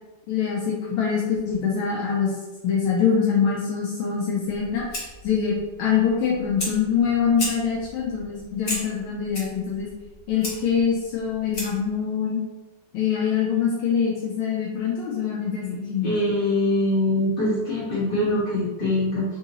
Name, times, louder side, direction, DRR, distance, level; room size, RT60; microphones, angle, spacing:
voice 1, 0.3-2.3 2.6-4.8 5.2-5.5 5.8-9.9 10.3-12.4 12.9-16.2, left 7 dB, 80° left, -4 dB, 1.4 m, -24 dB
Fire, 4.5-11.9, left 1 dB, 45° left, 1.1 m, -36 dB
voice 2, 16.0-19.2, left 1 dB, 25° left, -9 dB, 1.5 m, -23 dB
3.9 x 2.7 x 2.6 m, 1.2 s
omnidirectional pair, 2.3 m